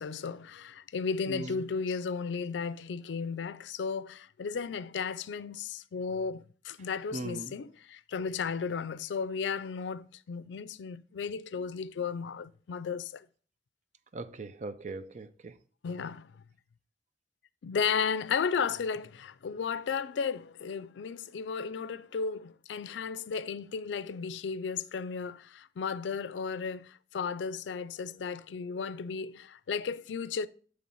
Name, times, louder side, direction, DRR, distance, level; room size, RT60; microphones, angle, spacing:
voice 1, 0.0-13.3 15.8-16.3 17.6-30.5, left 5 dB, 90° left, 0.4 m, -34 dB
voice 2, 7.1-7.5 14.1-15.5, right 2 dB, 40° right, 0.5 m, -39 dB
8.4 x 3.3 x 5.4 m
head